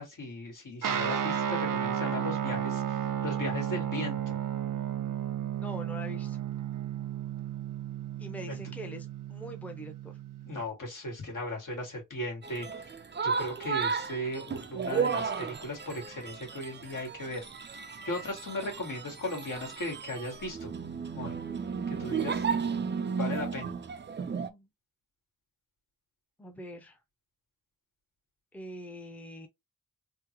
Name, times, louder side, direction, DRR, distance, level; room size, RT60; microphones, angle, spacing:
voice 1, 0.0-4.4 8.5-8.6 10.4-12.7 13.2-17.4 18.0-20.7 21.1-21.3 22.0-22.5 23.2-23.7, left 1 dB, 75° left, 1.7 m, -37 dB
Guitar, 0.8-10.6, right 9 dB, 80° right, 0.6 m, -33 dB
voice 2, 5.6-6.4 8.2-10.2 24.3-24.7 26.4-27.0 28.5-29.5, equal, 5° left, 0.6 m, -43 dB
sound 1, 12.4-24.5, right 6 dB, 35° right, 0.4 m, -34 dB
3.6 x 2.0 x 2.8 m
wide cardioid pair, 95°, 32 cm